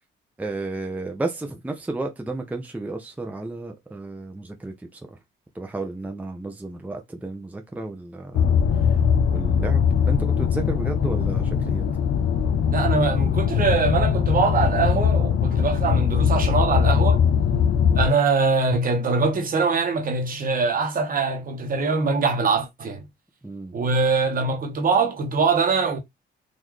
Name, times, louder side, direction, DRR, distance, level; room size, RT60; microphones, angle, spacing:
voice 1, 0.4-5.0 5.6-8.6 9.3-11.8 17.5-17.7 23.4-23.7, right 2 dB, 10° right, 0.6 m, -32 dB
sound 1, 8.3-18.1, left 7 dB, 80° left, 0.6 m, -21 dB
voice 2, 12.7-17.2 17.9-23.0 23.7-26.0, right 4 dB, 45° right, 1.1 m, -23 dB
3.8 x 2.6 x 3.1 m
cardioid pair, 115°, 19 cm